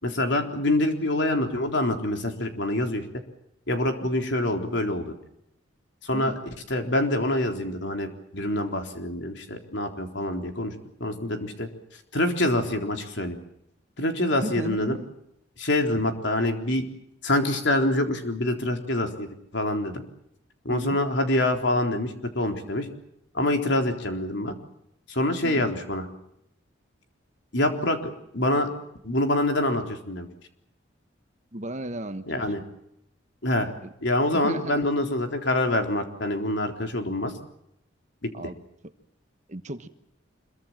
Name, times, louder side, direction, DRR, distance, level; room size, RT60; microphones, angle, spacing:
voice 1, 0.0-3.0 3.7-5.1 6.1-6.3 6.7-10.7 11.0-11.7 12.1-13.4 14.0-15.0 15.6-16.8 17.2-19.3 19.5-20.0 20.7-22.9 23.3-24.6 25.1-26.1 27.5-28.7 29.0-30.3 32.3-32.6 33.4-33.7 34.0-37.3 38.2-38.3, left 1 dB, 60° left, 5 dB, 3.9 m, -25 dB
voice 2, 14.4-15.1 20.7-21.0 25.4-25.7 31.5-32.4 33.8-33.9 34.3-34.9 38.3-38.6 39.5-39.9, right 1 dB, 35° right, 10 dB, 1.4 m, -35 dB
26.0 x 23.0 x 7.5 m, 0.77 s
head